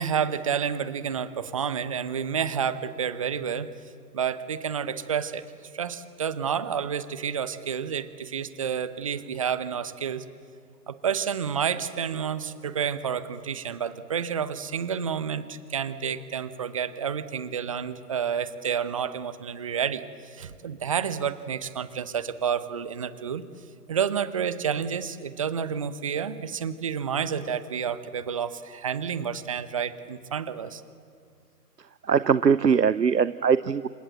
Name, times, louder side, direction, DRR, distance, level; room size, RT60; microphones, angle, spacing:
voice 1, 0.0-3.7 4.1-5.4 5.7-10.2 10.9-20.0 20.3-23.4 23.9-30.8, right 7 dB, 20° right, 14 dB, 0.8 m, -29 dB
voice 2, 32.0-33.9, right 6 dB, 80° right, 15 dB, 0.9 m, -21 dB
29.5 x 26.0 x 7.7 m, 2.2 s
figure-of-eight pair, 135°, 49 cm